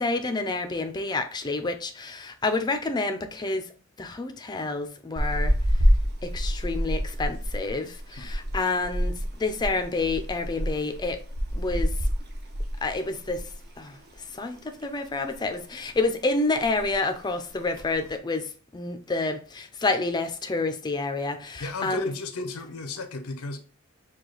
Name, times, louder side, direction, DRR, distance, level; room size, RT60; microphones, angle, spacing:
voice 1, 0.0-3.6 4.0-5.5 6.2-11.2 11.5-11.9 12.8-13.4 13.8-13.9 14.4-18.4 18.7-22.1, left 3 dB, 20° left, 0.4 m, -28 dB
sound 1, 5.2-13.7 13.9-14.1 14.5-15.4 15.7-16.1 16.3-16.4 16.6-17.1 17.6-18.1, equal, 50° right, 0.8 m, -27 dB
voice 2, 21.6-23.6, left 3 dB, 85° left, 0.6 m, -34 dB
4.8 x 2.3 x 3.8 m
head